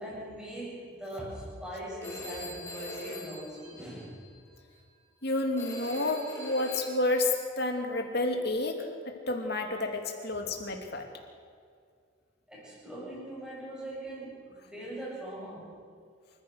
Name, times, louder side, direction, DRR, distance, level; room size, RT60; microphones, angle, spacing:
voice 1, 0.0-4.2 12.5-15.7, right 1 dB, 5° right, -7 dB, 7.8 m, -41 dB
Telephone, 2.0-4.4 5.6-7.3, left 1 dB, 15° left, 5.0 m, -42 dB
voice 2, 5.2-8.8 9.3-11.0, left 2 dB, 50° left, 3 dB, 2.7 m, -30 dB
28.5 x 15.0 x 6.5 m, 2.2 s
head